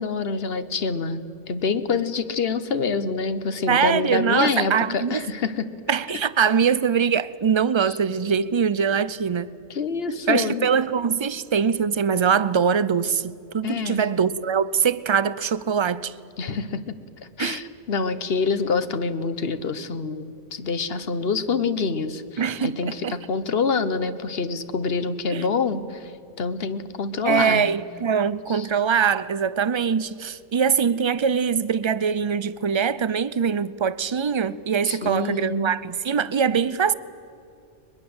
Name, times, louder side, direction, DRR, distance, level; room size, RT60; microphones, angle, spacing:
voice 1, 0.0-5.6 7.8-8.0 9.7-10.7 13.6-14.1 16.4-16.9 17.4-26.1 26.4-27.7 28.5-28.7 34.8-35.7, left 4 dB, 60° left, 1.3 m, -26 dB
voice 2, 3.7-5.2 5.9-9.5 10.3-16.1 17.4-17.6 22.4-23.2 25.3-25.5 27.2-36.9, right 7 dB, 35° right, 0.5 m, -23 dB
22.0 x 22.0 x 7.9 m
omnidirectional pair, 1.2 m